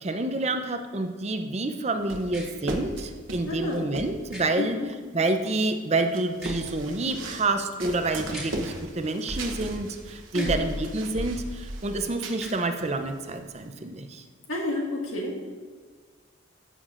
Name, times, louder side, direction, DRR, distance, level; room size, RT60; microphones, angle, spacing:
voice 1, 0.0-4.8 5.1-14.2, right 2 dB, 30° right, 7 dB, 0.5 m, -28 dB
sound 1, 2.1-4.2 4.9-5.0 5.9-7.5 7.8-12.5 12.8-13.3, right 1 dB, 75° right, 1.0 m, -36 dB
sound 2, 2.3-2.5 4.3-4.4 6.3-6.6 8.3-8.5 10.3-10.6 12.3-12.6, right 1 dB, ahead, 2.2 m, -40 dB
voice 2, 3.5-3.9 4.6-4.9 10.3-10.6 14.5-15.4, left 2 dB, 90° left, -1 dB, 1.9 m, -30 dB
15.0 x 6.8 x 2.5 m, 1.5 s
head